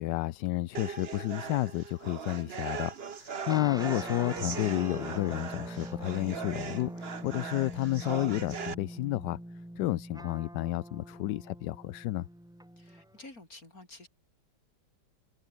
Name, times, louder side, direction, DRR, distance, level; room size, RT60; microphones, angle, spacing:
voice 1, 0.0-9.4 9.8-12.3, left 16 dB, 75° left, 1.2 m, -31 dB
sound 1, 0.7-8.7, right 6 dB, 40° right, 1.2 m, -40 dB
sound 2, 3.5-13.2, right 1 dB, 5° right, 0.4 m, -43 dB
voice 2, 12.8-14.1, left 2 dB, 50° left, 6.7 m, -50 dB
omnidirectional pair, 2.0 m